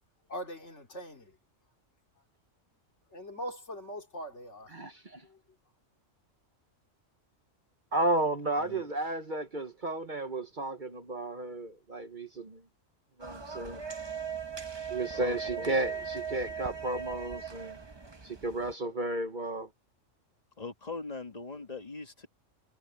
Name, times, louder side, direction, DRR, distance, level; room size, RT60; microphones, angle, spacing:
voice 1, 0.3-1.4 3.1-4.8 5.2-5.4, equal, 60° left, 3.5 m, -41 dB
voice 2, 4.7-5.2 7.9-12.6 13.2-13.8 14.9-17.8 18.2-19.7, right 2 dB, 40° right, 1.2 m, -33 dB
voice 3, 8.6-9.2 15.1-15.4 20.6-22.3, left 3 dB, 30° left, 2.3 m, -41 dB
sound 1, 13.2-18.7, right 6 dB, 20° right, 1.0 m, -39 dB
omnidirectional pair, 1.3 m